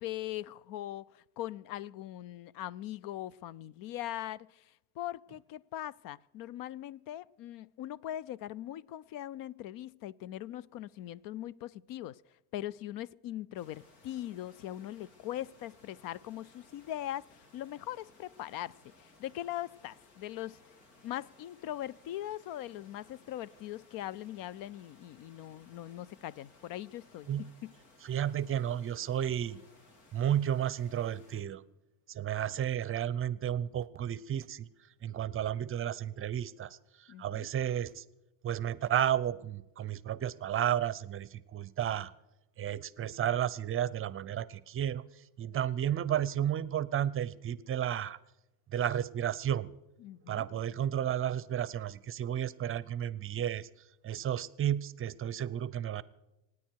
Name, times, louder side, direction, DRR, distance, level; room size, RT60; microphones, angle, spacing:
voice 1, 0.0-12.2 12.5-20.6 21.0-27.7 37.1-37.5 50.0-50.5, left 13 dB, 50° left, 0.5 m, -41 dB
sound 1, 13.5-31.4, left 2 dB, 75° left, 4.1 m, -61 dB
voice 2, 28.0-29.6 30.1-31.6 32.1-34.7 35.0-38.0 38.4-42.1 42.6-45.1 45.4-48.2 48.7-49.7 50.3-53.7 54.0-56.0, right 10 dB, 30° right, 0.6 m, -32 dB
26.5 x 9.7 x 4.6 m
supercardioid pair, 115°, 43 cm